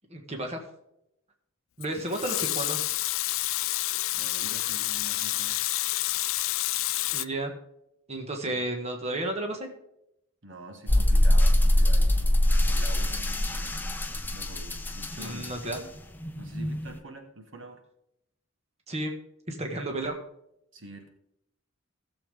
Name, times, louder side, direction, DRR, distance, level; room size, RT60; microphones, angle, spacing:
voice 1, 0.1-0.6 1.8-2.8 7.1-7.5 8.1-9.7 15.2-15.8 18.9-19.1 19.5-20.1, right 1 dB, 30° right, 3 dB, 1.6 m, -32 dB
Water tap faucet / Sink (filling or washing) / Liquid, 1.8-7.3, left 17 dB, 75° left, 0.4 m, -29 dB
voice 2, 4.1-5.6 8.5-8.7 10.4-15.9 16.4-17.8 19.7-20.0 20.7-21.1, right 1 dB, 65° right, 5 dB, 1.5 m, -46 dB
sound 1, 10.9-17.0, left 1 dB, 10° left, 0.7 m, -24 dB
16.0 x 7.3 x 3.6 m, 0.80 s
head